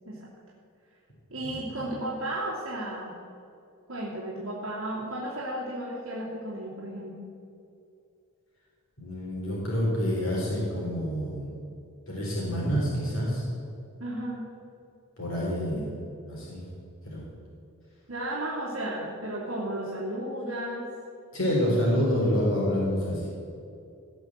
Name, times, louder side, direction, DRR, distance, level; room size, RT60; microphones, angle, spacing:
voice 1, 1.3-3.2 3.9-7.3 14.0-14.5 15.7-15.8 18.1-20.9, right 1 dB, 70° right, -6 dB, 2.6 m, -34 dB
voice 2, 9.0-11.5 12.1-13.4 15.2-15.9 16.3-16.6 17.1-17.2 21.3-23.3, equal, 60° left, -5 dB, 4.0 m, -27 dB
17.5 x 6.3 x 7.5 m, 2.5 s
head